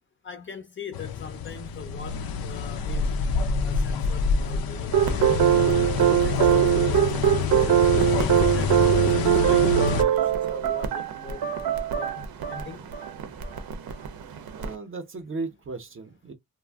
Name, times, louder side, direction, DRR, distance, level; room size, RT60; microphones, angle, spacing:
voice 1, 0.2-3.1 3.6-5.8 6.2-7.0 7.6-11.4 11.9-12.9, left 5 dB, 35° left, 0.5 m, -41 dB
sound 1, 0.9-10.0, left 5 dB, 85° left, 0.5 m, -27 dB
sound 2, 4.9-14.7, right 11 dB, 85° right, 0.6 m, -22 dB
voice 2, 14.5-16.3, right 3 dB, 35° right, 0.5 m, -36 dB
2.5 x 2.0 x 3.3 m
wide cardioid pair, 180°, 35 cm